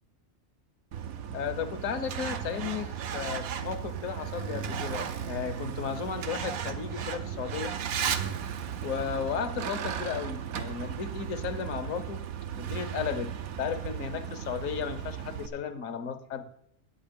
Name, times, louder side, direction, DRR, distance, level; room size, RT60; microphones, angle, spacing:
Truck, 0.9-15.5, right 8 dB, 85° right, 1.2 m, -35 dB
voice 1, 1.3-7.8 8.8-12.2 12.6-13.3 13.6-16.5, left 7 dB, 70° left, 10 dB, 1.3 m, -34 dB
10.5 x 8.6 x 5.1 m, 0.69 s
omnidirectional pair, 1.5 m